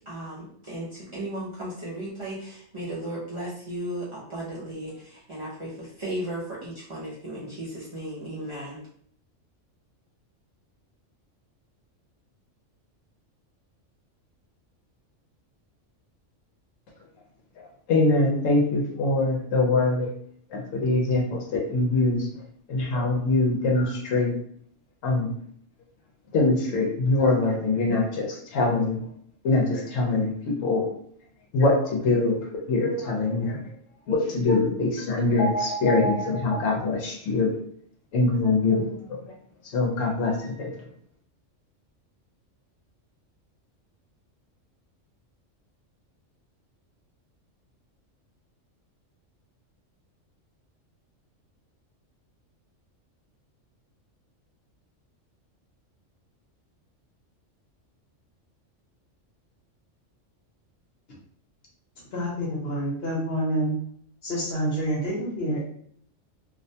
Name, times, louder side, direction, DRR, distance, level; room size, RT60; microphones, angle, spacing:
voice 1, 0.1-8.8, right 1 dB, 50° right, -8 dB, 0.4 m, -35 dB
voice 2, 17.6-20.1 20.5-22.3 22.7-24.3 25.0-25.3 26.3-29.0 29.4-30.9 31.5-33.7 34.1-37.5 38.1-39.2 39.7-40.7, left 2 dB, 85° left, -1 dB, 1.0 m, -23 dB
voice 3, 62.1-63.7 64.2-65.6, right 1 dB, 55° left, -3 dB, 1.0 m, -27 dB
2.5 x 2.1 x 2.6 m, 0.62 s
omnidirectional pair, 1.3 m